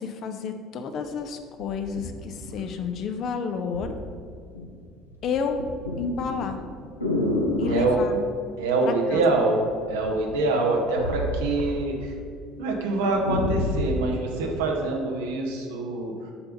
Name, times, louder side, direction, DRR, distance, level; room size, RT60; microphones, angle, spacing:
voice 1, 0.0-4.0 5.2-5.6 6.0-6.6 7.6-8.2 8.8-9.2, left 5 dB, 50° left, 7 dB, 0.6 m, -30 dB
sound 1, 1.0-1.1 1.6-3.1 3.7-3.9 4.3-4.8 5.1-7.9 9.1-9.6 9.9-12.2 12.5-12.6 12.9-14.0 14.7-14.8, left 1 dB, 90° left, 0.7 m, -29 dB
voice 2, 8.6-9.6 9.9-12.1 12.6-16.1, right 2 dB, 70° right, 1 dB, 0.9 m, -25 dB
7.0 x 3.4 x 5.2 m, 2.2 s
figure-of-eight pair, 60°, 0 cm